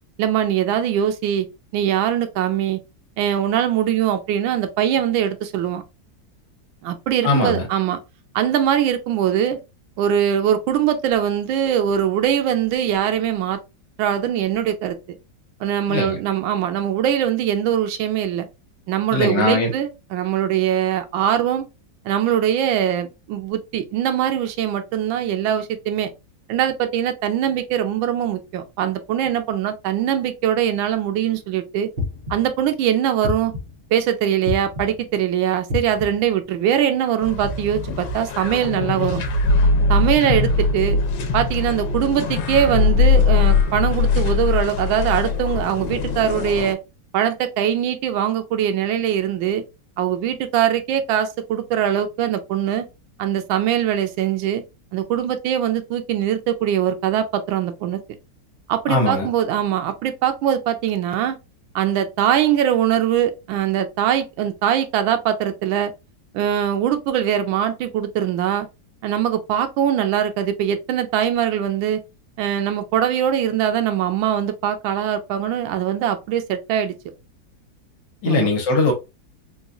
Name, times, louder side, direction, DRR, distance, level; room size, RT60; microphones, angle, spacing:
voice 1, 0.2-1.5 1.7-2.8 3.2-5.8 6.8-8.0 8.3-9.6 10.0-13.6 14.0-15.2 15.6-18.5 18.9-21.7 22.0-26.1 26.5-31.9 32.3-33.5 33.9-39.2 39.9-41.0 41.3-46.8 47.1-49.6 50.0-52.8 53.2-54.6 54.9-58.0 58.7-61.4 61.7-65.9 66.3-68.7 69.0-72.0 72.4-77.0 78.3-78.5, right 10 dB, 85° right, 1.4 m, -22 dB
voice 2, 7.2-7.7 15.9-16.2 19.1-19.7 58.9-59.3 78.2-78.9, left 3 dB, 70° left, 1.6 m, -20 dB
sound 1, 32.0-32.6 33.2-33.9 34.5-35.1 35.7-36.3, left 4 dB, 45° right, 0.7 m, -29 dB
sound 2, 37.2-46.7, left 4 dB, 90° left, 1.4 m, -21 dB
4.1 x 2.3 x 2.4 m
omnidirectional pair, 2.1 m